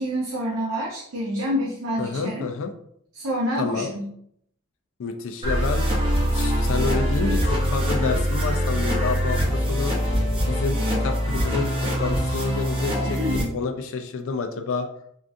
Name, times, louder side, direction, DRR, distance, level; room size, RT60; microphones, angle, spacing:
voice 1, 0.0-2.5 3.1-4.1 12.2-12.4 13.1-13.5, equal, 70° right, -3 dB, 0.6 m, -27 dB
voice 2, 2.0-2.7 3.6-3.9 5.0-5.9 6.3-9.9 10.5-13.2 13.5-14.9, left 4 dB, 65° left, 6 dB, 0.4 m, -29 dB
sound 1, 5.4-13.4, equal, 25° right, 0.7 m, -23 dB
3.7 x 2.4 x 2.5 m, 0.70 s
head